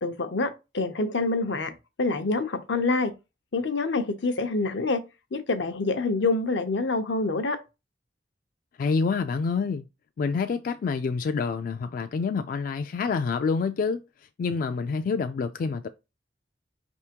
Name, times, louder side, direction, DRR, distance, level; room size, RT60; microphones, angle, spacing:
voice 1, 0.0-1.7 2.0-3.1 3.5-5.0 5.3-7.6, left 3 dB, 80° left, 0.7 m, -26 dB
voice 2, 8.8-9.8 10.2-14.0 14.4-15.9, left 5 dB, 50° left, 0.3 m, -27 dB
5.0 x 3.5 x 2.8 m
head